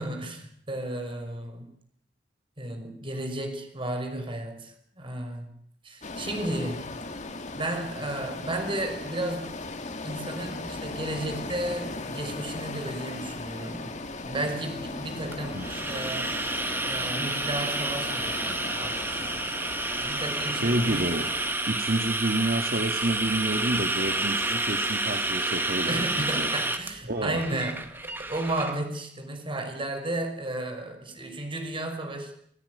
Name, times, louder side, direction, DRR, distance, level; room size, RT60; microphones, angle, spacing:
voice 1, 0.0-1.7 2.6-5.5 5.8-6.8 7.5-9.6 10.0-16.3 16.9-19.5 20.0-21.2 25.9-32.3, right 1 dB, 30° right, 5 dB, 5.7 m, -33 dB
sound 1, 6.0-21.6, left 2 dB, 45° left, 2.2 m, -37 dB
sound 2, 15.3-28.7, right 2 dB, 15° right, 2.2 m, -30 dB
voice 2, 20.5-21.3 21.7-26.5 27.1-27.6, right 1 dB, 55° right, 5 dB, 2.1 m, -29 dB
27.5 x 16.5 x 9.6 m, 0.66 s
head